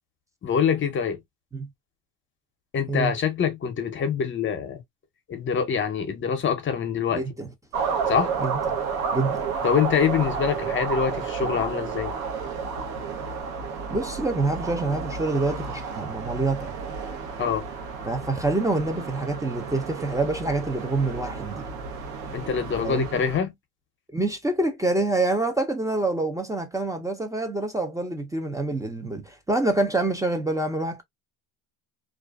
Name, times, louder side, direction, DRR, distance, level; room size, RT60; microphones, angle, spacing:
voice 1, 0.4-1.2 2.7-4.8 5.3-7.2 8.1-8.3 9.6-12.1 17.4-17.6 22.3-23.5, left 7 dB, 30° left, 0.7 m, -25 dB
voice 2, 7.1-7.5 8.4-8.6 9.1-9.4 13.9-16.7 18.0-21.7 22.8-23.1 24.1-31.0, right 2 dB, 10° right, 0.5 m, -26 dB
sound 1, 7.7-23.4, right 5 dB, 90° right, 0.9 m, -31 dB
2.3 x 2.3 x 2.2 m
supercardioid pair, 105°, 39 cm